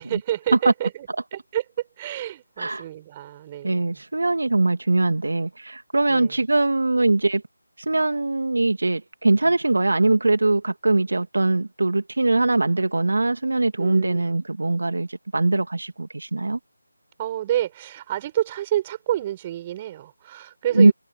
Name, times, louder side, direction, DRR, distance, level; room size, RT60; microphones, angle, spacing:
voice 1, 0.0-4.0 6.1-6.4 13.8-14.2 17.2-20.9, right 12 dB, 20° right, 6.1 m, -29 dB
voice 2, 3.6-7.4 7.8-16.6 20.7-20.9, right 2 dB, 70° right, 2.3 m, -21 dB
figure-of-eight pair, 160°, 0 cm